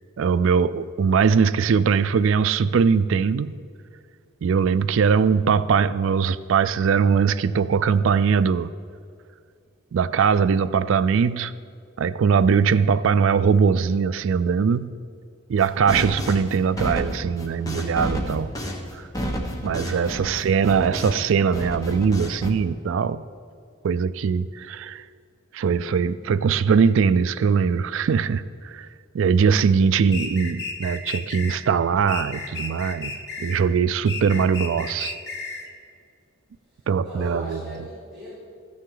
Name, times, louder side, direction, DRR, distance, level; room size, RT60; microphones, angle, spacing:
voice 1, 0.2-3.5 4.4-8.7 9.9-11.5 12.0-14.9 15.5-18.5 18.9-19.1 19.6-23.2 23.8-25.0 25.5-28.9 29.1-33.1 33.4-35.2 36.9-37.6, right 6 dB, 65° right, 15 dB, 0.3 m, -21 dB
sound 1, 15.6-21.3 21.5-22.5, equal, 15° left, 1.0 m, -30 dB
voice 2, 19.8-20.5 29.5-29.8 36.7-38.4, left 1 dB, ahead, -13 dB, 3.3 m, -40 dB
sound 2, 30.1-31.6 32.1-33.6 34.1-35.7, left 4 dB, 50° left, 1.2 m, -33 dB
14.5 x 9.4 x 3.9 m, 2.3 s
head